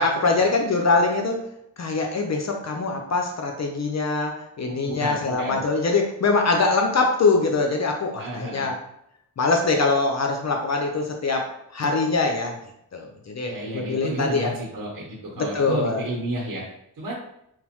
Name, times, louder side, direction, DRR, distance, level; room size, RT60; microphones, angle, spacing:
voice 1, 0.0-1.4 1.8-8.8 9.4-12.6 12.9-14.6 15.4-16.0, left 3 dB, 45° left, 2 dB, 0.5 m, -23 dB
voice 2, 4.8-5.6 8.2-8.7 13.4-15.1 15.4-16.6 17.0-17.1, right 1 dB, 55° right, -4 dB, 0.9 m, -31 dB
2.9 x 2.0 x 2.9 m, 0.77 s
cardioid pair, 50°, 39 cm